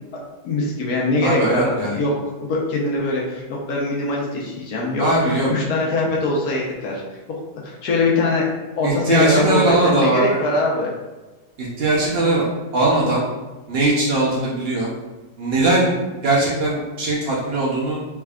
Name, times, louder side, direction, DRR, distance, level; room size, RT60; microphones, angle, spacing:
voice 1, 0.1-7.0 7.3-8.5 8.7-10.9, left 2 dB, 65° left, -3 dB, 1.1 m, -23 dB
voice 2, 1.2-2.0 5.0-5.5 8.8-10.4 11.6-12.5 12.7-13.2 13.7-14.9 15.4-18.0, right 2 dB, 85° right, -5 dB, 0.5 m, -20 dB
3.5 x 3.4 x 2.3 m, 1.2 s
omnidirectional pair, 1.9 m